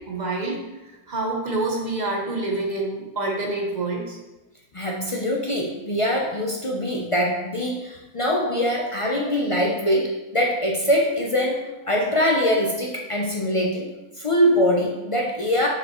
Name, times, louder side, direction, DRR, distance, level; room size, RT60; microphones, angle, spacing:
voice 1, 0.1-0.6 1.1-4.2, right 2 dB, 35° right, -1 dB, 0.9 m, -27 dB
voice 2, 4.7-13.9 14.2-15.7, equal, 50° left, -2 dB, 0.4 m, -23 dB
6.1 x 5.5 x 3.0 m, 1.1 s
omnidirectional pair, 1.6 m